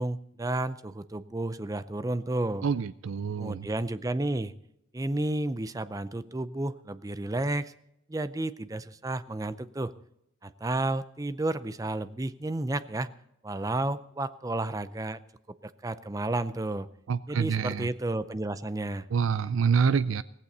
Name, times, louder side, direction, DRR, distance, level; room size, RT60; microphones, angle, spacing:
voice 1, 0.0-2.6 3.4-4.5 4.9-7.7 8.1-9.9 10.4-13.1 13.4-15.2 15.6-16.9 17.3-19.1, right 2 dB, 15° right, 14 dB, 0.5 m, -31 dB
voice 2, 2.6-3.7 17.1-17.9 19.1-20.2, right 6 dB, 90° right, 15 dB, 0.4 m, -26 dB
16.5 x 15.5 x 4.1 m, 0.78 s
head